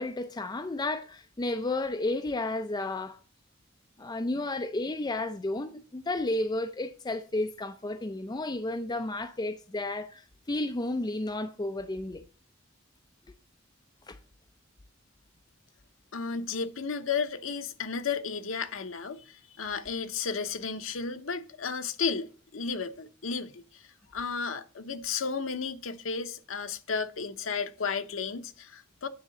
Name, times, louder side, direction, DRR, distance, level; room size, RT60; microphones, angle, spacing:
voice 1, 0.0-3.2 4.0-12.2 14.1-14.2, left 2 dB, 20° left, 0.5 m, -32 dB
voice 2, 16.1-23.8 24.1-29.1, left 5 dB, 75° left, 0.8 m, -33 dB
9.6 x 3.9 x 7.0 m
head